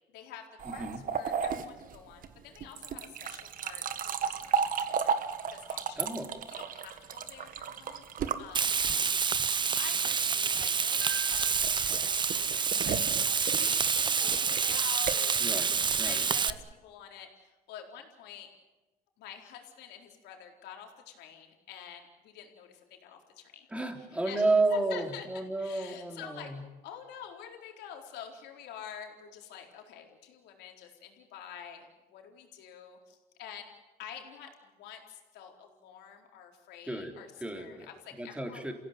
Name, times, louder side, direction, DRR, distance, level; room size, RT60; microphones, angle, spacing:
voice 1, 0.1-5.2 5.5-6.0 6.5-15.6 16.0-18.5 19.2-23.7 24.0-24.4 24.7-26.5 26.8-33.7 34.0-38.7, left 9 dB, 85° left, 2 dB, 4.3 m, -48 dB
sound 1, 0.6-9.2 11.0-16.7, right 7 dB, 55° right, 1.6 m, -35 dB
voice 2, 0.7-1.0 6.0-6.3 15.4-16.3 23.7-26.6 36.9-37.9 38.2-38.7, right 2 dB, 5° right, 3 dB, 3.7 m, -32 dB
Frying (food), 8.5-16.5, right 6 dB, 25° right, 0.7 m, -28 dB
29.5 x 16.5 x 9.4 m, 1.2 s
cardioid pair, 110°, 17 cm